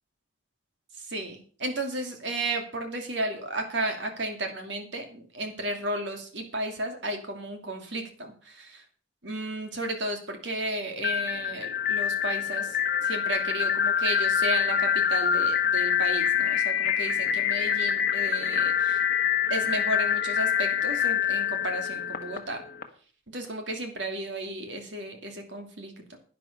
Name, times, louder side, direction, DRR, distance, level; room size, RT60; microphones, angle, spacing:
voice 1, 0.9-8.8 9.2-19.0 19.5-22.6 23.3-26.2, right 1 dB, 60° right, 5 dB, 2.6 m, -33 dB
sound 1, 11.0-22.8, left 8 dB, 45° left, 1.4 m, -26 dB
11.0 x 10.0 x 5.4 m, 0.41 s
head